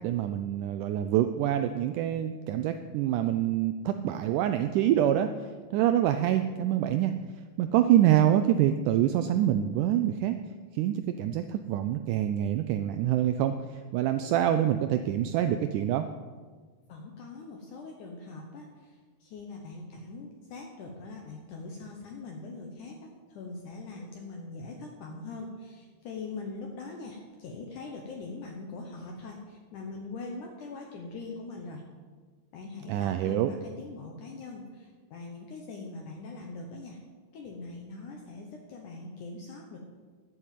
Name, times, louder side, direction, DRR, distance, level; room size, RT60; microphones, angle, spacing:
voice 1, 0.0-5.3 5.7-7.1 7.6-10.4 10.7-16.1 32.9-33.5, right 11 dB, 90° right, 9 dB, 1.8 m, -26 dB
voice 2, 16.9-31.8 32.5-37.0 37.3-39.8, left 3 dB, 65° left, 1 dB, 2.3 m, -42 dB
11.0 x 7.9 x 7.5 m, 1.5 s
omnidirectional pair, 4.2 m